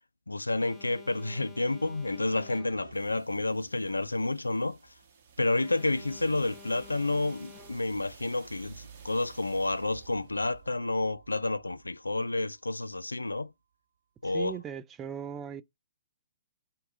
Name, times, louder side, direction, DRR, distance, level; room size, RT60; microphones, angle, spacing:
voice 1, 0.3-4.8 5.4-13.5 14.2-14.6, left 2 dB, 85° left, 0.4 m, -30 dB
Alarm, 0.5-3.1 5.5-8.1, left 4 dB, 15° left, 0.7 m, -51 dB
sound 1, 1.2-13.0, right 6 dB, 45° right, 1.4 m, -54 dB
voice 2, 14.2-15.6, right 8 dB, 20° right, 0.4 m, -38 dB
4.7 x 2.8 x 3.8 m
figure-of-eight pair, 120°, 0 cm